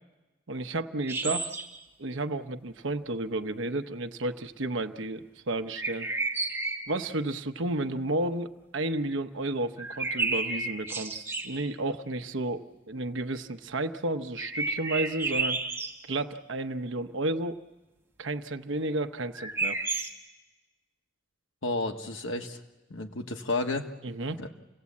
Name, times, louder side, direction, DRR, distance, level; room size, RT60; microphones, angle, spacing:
voice 1, 0.5-1.5 2.0-6.1 6.9-15.6 16.0-17.6 18.2-19.8 24.0-24.4, right 2 dB, 85° right, 9 dB, 1.0 m, -32 dB
sound 1, 1.0-1.8 5.7-7.0 9.8-11.6 14.4-16.0 19.3-20.1, right 3 dB, 10° right, 1.3 m, -31 dB
voice 2, 21.6-22.6 22.9-23.9 24.3-24.5, left 2 dB, 85° left, 3 dB, 1.5 m, -31 dB
29.0 x 16.5 x 8.5 m, 1.1 s
head